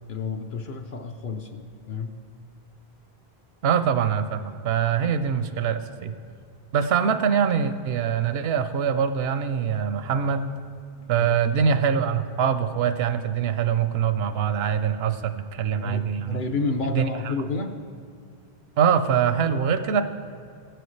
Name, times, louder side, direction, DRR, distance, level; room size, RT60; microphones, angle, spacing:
voice 1, 0.1-2.1 11.2-11.3 15.8-17.8, left 3 dB, 60° left, 4 dB, 0.8 m, -30 dB
voice 2, 3.6-6.1 6.7-10.5 11.1-16.4 16.9-17.3 18.8-20.0, right 7 dB, 80° right, 10 dB, 0.8 m, -23 dB
16.5 x 7.9 x 3.2 m, 2.3 s
omnidirectional pair, 1.0 m